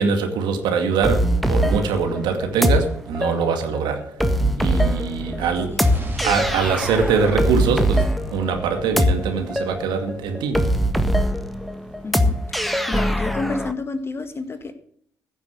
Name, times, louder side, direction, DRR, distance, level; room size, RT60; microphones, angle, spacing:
voice 1, 0.0-4.1 4.6-5.8 6.2-10.8, right 5 dB, 60° right, 2.2 m, -23 dB
sound 1, 1.0-13.7, equal, ahead, 1.6 m, -22 dB
voice 2, 5.4-5.9 12.0-14.7, left 3 dB, 30° left, 1.9 m, -31 dB
Explosion, 5.8-9.9, right 1 dB, 20° right, 3.8 m, -32 dB
15.5 x 7.1 x 8.0 m
figure-of-eight pair, 50°, 8 cm